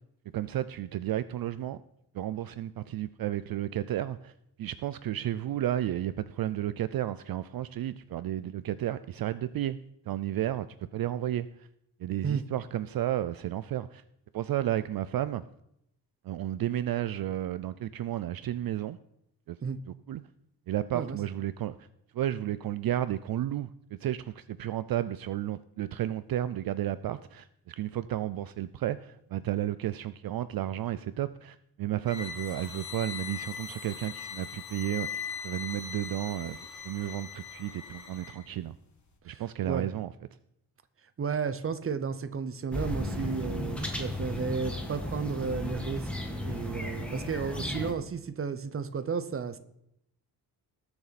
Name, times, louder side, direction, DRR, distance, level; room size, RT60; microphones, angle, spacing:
voice 1, 0.3-1.8 2.1-4.3 4.6-9.8 10.1-10.7 10.9-11.7 12.0-14.0 14.3-15.4 16.2-19.0 19.5-19.6 20.1-20.2 20.7-21.9 22.1-38.8 39.3-40.1, right 12 dB, 60° right, 14 dB, 0.5 m, -32 dB
sound 1, 32.0-38.4, left 7 dB, 45° left, 1.8 m, -40 dB
voice 2, 39.3-39.9 41.2-46.1 46.4-49.6, right 6 dB, 35° right, 12 dB, 0.8 m, -33 dB
sound 2, 42.7-47.9, left 1 dB, 5° left, 1.6 m, -34 dB
19.5 x 7.1 x 4.1 m, 0.76 s
wide cardioid pair, 155°, 41 cm